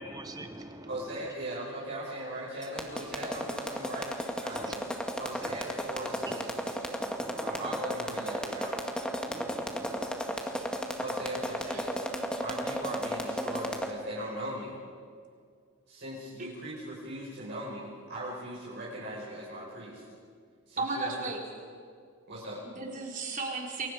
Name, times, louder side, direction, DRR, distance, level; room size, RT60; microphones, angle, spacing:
voice 1, 0.0-1.3 4.5-4.7 5.4-5.6 6.2-6.6 7.0-7.8 9.3-10.1, right 1 dB, 20° right, 7 dB, 1.1 m, -45 dB
voice 2, 0.9-4.1 4.4-4.9 5.2-6.5 7.4-8.8 11.0-12.0 12.4-14.8 15.9-20.0 20.7-21.3 22.3-22.6, right 1 dB, 55° right, -6 dB, 5.2 m, -39 dB
sound 1, 2.6-13.9, equal, 5° left, 1.8 m, -33 dB
voice 3, 20.8-21.4 22.6-23.9, right 3 dB, 40° right, 0 dB, 4.1 m, -35 dB
29.5 x 23.0 x 5.1 m, 2.2 s
head